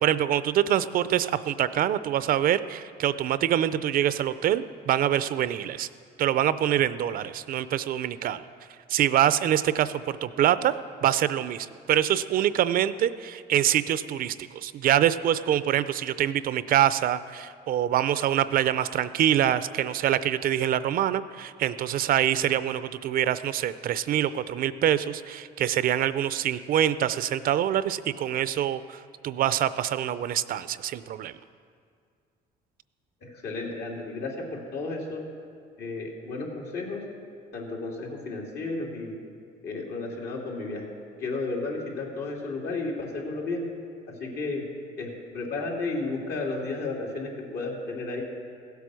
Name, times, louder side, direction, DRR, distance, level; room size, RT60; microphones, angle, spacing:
voice 1, 0.0-5.9 6.2-8.4 8.9-10.7 11.0-31.3, right 11 dB, 60° right, 14 dB, 0.5 m, -25 dB
voice 2, 33.2-35.2 35.8-37.0 37.5-39.1 39.6-40.9 41.2-43.7 44.1-44.6 45.0-48.2, left 3 dB, 70° left, -1 dB, 3.0 m, -33 dB
16.0 x 8.3 x 6.3 m, 2.2 s
cardioid pair, 110°, 17 cm